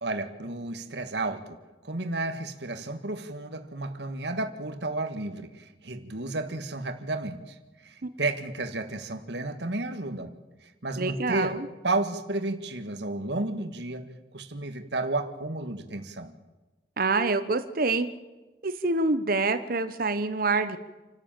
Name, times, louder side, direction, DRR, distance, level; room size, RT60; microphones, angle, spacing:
voice 1, 0.0-1.6 1.8-7.6 7.8-10.3 10.6-11.6 11.8-14.1 14.3-16.3, right 2 dB, 70° right, 7 dB, 1.7 m, -32 dB
voice 2, 11.0-11.7 17.0-18.1 18.6-20.8, right 3 dB, 50° right, 11 dB, 1.0 m, -26 dB
28.5 x 12.5 x 9.0 m, 1.2 s
head